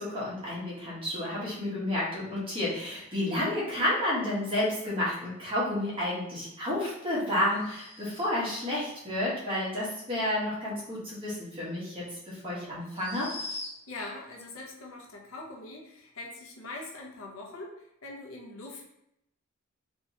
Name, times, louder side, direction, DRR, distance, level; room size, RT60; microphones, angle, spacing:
voice 1, 0.0-13.3, left 1 dB, 25° right, -7 dB, 1.2 m, -31 dB
sound 1, 7.5-8.6 11.6-11.7 12.8-14.1, left 2 dB, 25° left, 0.7 m, -42 dB
voice 2, 13.9-18.8, left 2 dB, 65° left, -1 dB, 0.7 m, -42 dB
3.2 x 3.0 x 2.7 m, 0.81 s
head